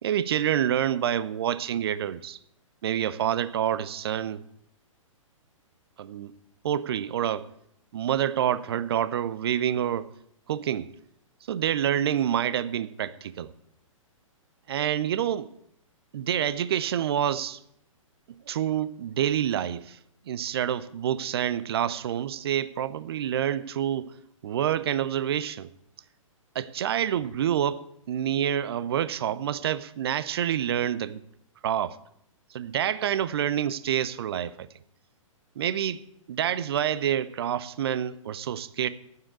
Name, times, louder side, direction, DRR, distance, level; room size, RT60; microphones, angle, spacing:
voice 1, 0.0-2.4 2.8-4.4 6.0-6.3 6.6-7.5 7.9-10.1 10.5-10.9 11.5-13.5 14.7-15.5 16.1-17.6 18.3-20.0 20.3-24.1 24.4-25.7 26.5-31.2 31.6-32.0 32.5-34.7 35.6-36.0 36.3-38.9, right 10 dB, 45° right, 0.6 m, -27 dB
9.5 x 7.3 x 8.2 m
figure-of-eight pair, 120°, 17 cm